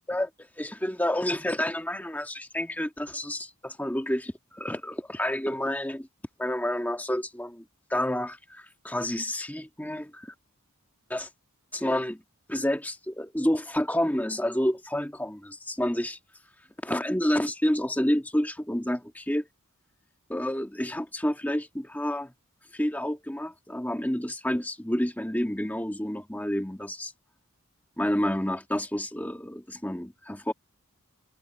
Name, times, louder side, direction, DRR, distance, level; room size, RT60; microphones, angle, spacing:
voice 1, 0.6-6.1 6.4-7.6 7.9-10.3 11.1-11.3 11.7-12.2 12.5-16.2 16.8-19.5 20.3-22.3 22.7-27.1 28.0-30.5, left 1 dB, 5° left, 1.7 m, -29 dB
head